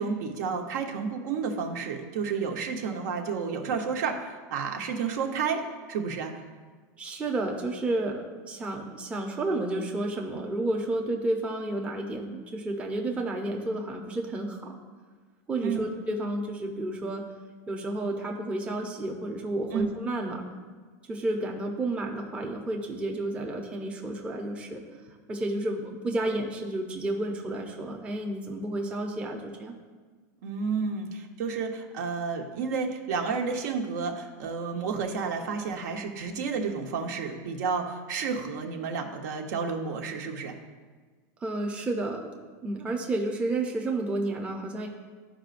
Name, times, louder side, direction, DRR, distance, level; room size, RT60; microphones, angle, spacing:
voice 1, 0.0-6.4 15.6-15.9 19.7-19.9 30.4-40.5, right 5 dB, 70° right, 3 dB, 1.0 m, -31 dB
voice 2, 7.0-14.8 15.5-17.2 17.7-20.4 21.1-24.8 25.1-29.7 41.4-42.3 42.6-44.9, right 2 dB, 10° right, 1 dB, 0.7 m, -31 dB
13.5 x 5.0 x 2.5 m, 1.4 s
supercardioid pair, 160°, 10 cm